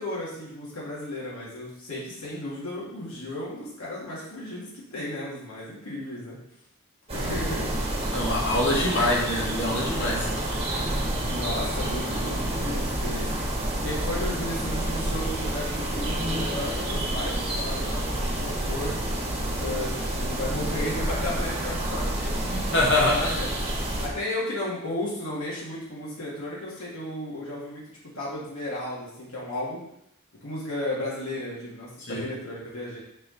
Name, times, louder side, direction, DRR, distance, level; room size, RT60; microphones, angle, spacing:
voice 1, 0.0-6.4 7.1-7.8 11.3-13.3 13.8-19.0 19.6-22.5 22.9-23.5 24.0-27.9 28.1-29.8 30.4-33.0, left 1 dB, 75° left, -7 dB, 2.4 m, -34 dB
sound 1, 7.1-24.1, right 1 dB, 25° right, 1.5 m, -29 dB
voice 2, 8.1-10.3 22.5-23.4 32.0-32.3, left 1 dB, 55° left, -3 dB, 1.7 m, -25 dB
5.4 x 4.9 x 4.2 m, 0.78 s
head